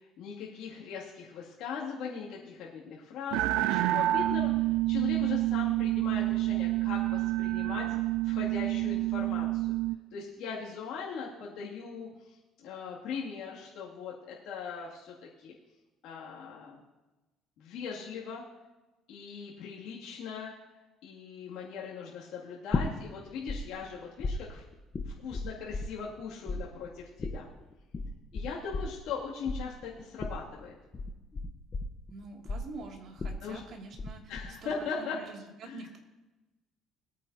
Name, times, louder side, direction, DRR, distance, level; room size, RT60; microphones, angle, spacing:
voice 1, 0.0-8.0 8.2-9.7 10.1-12.4 12.6-15.5 16.0-16.8 17.6-18.4 19.1-20.5 21.0-24.6 25.1-27.5 28.3-30.7 33.4-33.6 34.3-35.2 35.6-35.8, left 6 dB, 75° left, -5 dB, 2.5 m, -40 dB
sound 1, 3.3-10.0, right 17 dB, 90° right, 0.3 m, -28 dB
sound 2, 22.7-23.6 23.8-26.2 26.5-34.1 34.4-34.9, left 3 dB, 30° left, 1.0 m, -35 dB
voice 2, 32.1-36.0, right 3 dB, 55° right, 1 dB, 2.5 m, -46 dB
20.5 x 9.2 x 2.8 m, 1.1 s
cardioid pair, 125°, 0 cm